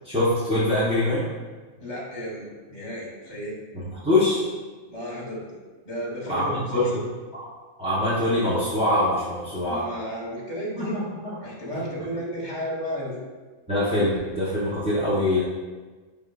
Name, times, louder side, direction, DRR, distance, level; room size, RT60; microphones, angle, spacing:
voice 1, 0.0-1.3 3.7-4.5 6.3-7.1 7.3-7.4 7.8-9.9 10.8-11.3 11.7-12.1 13.7-15.4, left 1 dB, 5° right, -10 dB, 0.4 m, -24 dB
voice 2, 1.8-3.6 4.9-5.6 5.8-7.0 9.7-11.1 11.4-13.2, equal, 30° left, -5 dB, 1.1 m, -33 dB
4.9 x 3.5 x 2.2 m, 1.3 s
omnidirectional pair, 1.3 m